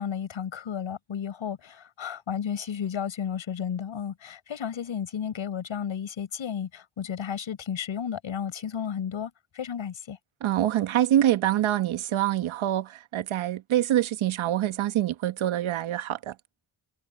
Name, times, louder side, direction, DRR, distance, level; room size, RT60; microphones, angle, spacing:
voice 1, 0.0-10.2, left 8 dB, 75° left, 4.8 m, -33 dB
voice 2, 10.4-16.3, right 12 dB, 80° right, 1.5 m, -25 dB
supercardioid pair, 45°, 47 cm